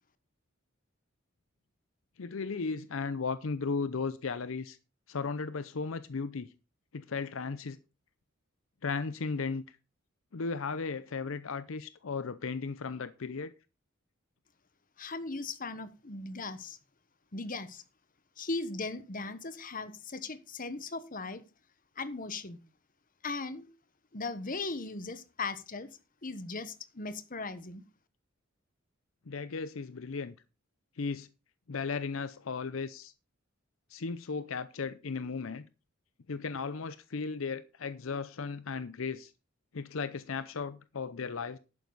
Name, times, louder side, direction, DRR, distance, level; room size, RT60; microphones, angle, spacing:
voice 1, 2.2-4.8 5.1-6.5 6.9-7.8 8.8-9.8 10.3-13.5 29.3-30.3 31.0-31.3 31.7-33.1 33.9-35.6 36.3-39.3 39.7-41.6, left 4 dB, 80° left, 0.6 m, -35 dB
voice 2, 15.0-16.8 17.3-17.8 18.4-21.4 22.0-22.6 23.2-23.7 24.1-25.9 26.2-27.8, left 3 dB, 45° left, 1.3 m, -38 dB
11.5 x 9.4 x 4.1 m
head